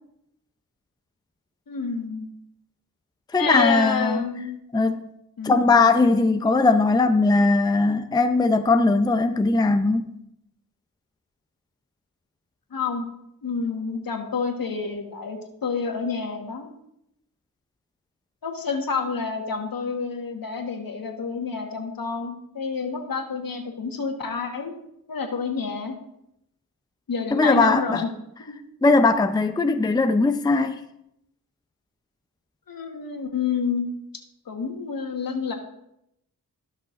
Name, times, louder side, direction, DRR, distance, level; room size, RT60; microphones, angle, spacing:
voice 1, 1.7-2.3 3.4-4.6 5.4-5.6 12.7-13.1 13.4-16.7 18.4-24.7 25.1-26.0 27.1-28.1 28.4-28.5 32.7-33.9 34.4-35.5, left 5 dB, 65° left, 1.5 m, -29 dB
voice 2, 3.3-4.2 4.7-5.1 5.4-10.1 27.3-28.0 28.8-30.8, left 3 dB, 10° left, 0.5 m, -19 dB
15.0 x 6.3 x 2.6 m
cardioid pair, 60°, 37 cm